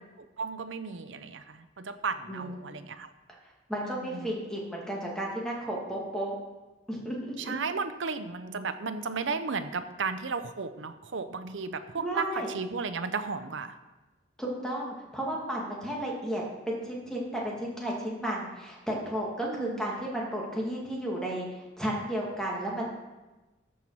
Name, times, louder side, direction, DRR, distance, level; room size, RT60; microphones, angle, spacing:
voice 1, 0.2-3.1 3.8-4.3 7.4-13.8 19.4-19.8, right 4 dB, 90° right, 10 dB, 0.7 m, -34 dB
voice 2, 3.7-6.4 6.9-7.6 12.0-12.5 14.4-22.9, right 1 dB, 5° left, -3 dB, 2.0 m, -33 dB
13.5 x 5.6 x 4.7 m, 1.1 s
head